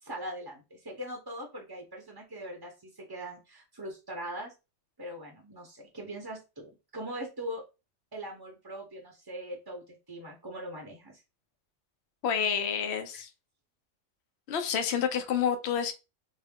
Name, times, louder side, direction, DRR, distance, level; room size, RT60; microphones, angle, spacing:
voice 1, 0.0-4.5 5.0-7.6 8.1-11.2 13.1-13.2, equal, 25° right, 0.7 m, -41 dB
voice 2, 12.2-13.3 14.5-15.9, left 7 dB, 65° left, 0.9 m, -29 dB
4.2 x 2.0 x 3.6 m
omnidirectional pair, 1.3 m